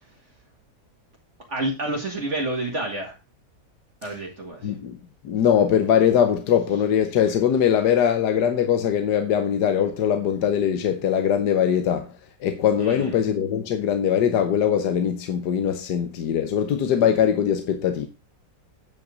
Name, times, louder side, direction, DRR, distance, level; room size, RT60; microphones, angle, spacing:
voice 1, 1.5-3.2 4.0-4.8 12.8-13.1, right 2 dB, 40° right, 2.2 m, -29 dB
voice 2, 4.6-5.0 5.2-12.1 12.4-18.1, left 8 dB, 70° left, 1.5 m, -21 dB
9.5 x 5.7 x 5.0 m
omnidirectional pair, 1.9 m